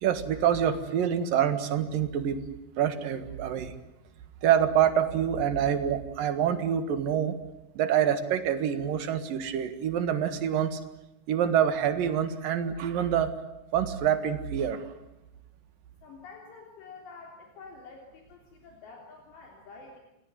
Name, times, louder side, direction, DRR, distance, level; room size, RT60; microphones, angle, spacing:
voice 1, 0.0-2.4 2.8-3.7 4.4-7.3 7.8-10.8 11.3-13.3 13.7-14.8, right 9 dB, 60° right, 10 dB, 2.9 m, -26 dB
voice 2, 16.0-20.0, left 4 dB, 70° left, 1 dB, 5.4 m, -48 dB
28.5 x 19.5 x 9.5 m, 0.94 s
omnidirectional pair, 5.3 m